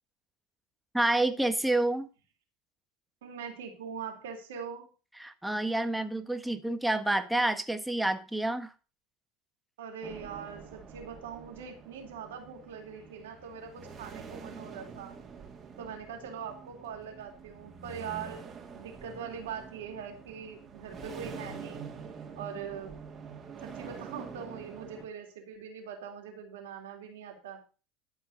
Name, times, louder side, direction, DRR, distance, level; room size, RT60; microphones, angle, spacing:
voice 1, 0.9-2.1 5.2-8.7, right 1 dB, 5° right, 1.5 m, -28 dB
voice 2, 3.2-4.9 9.8-15.1 15.8-21.8 22.4-22.9 23.6-27.6, right 7 dB, 80° right, 3.5 m, -42 dB
sound 1, 10.0-25.1, right 5 dB, 35° right, 2.6 m, -46 dB
13.0 x 5.5 x 6.5 m
hypercardioid pair, 85°, 0 cm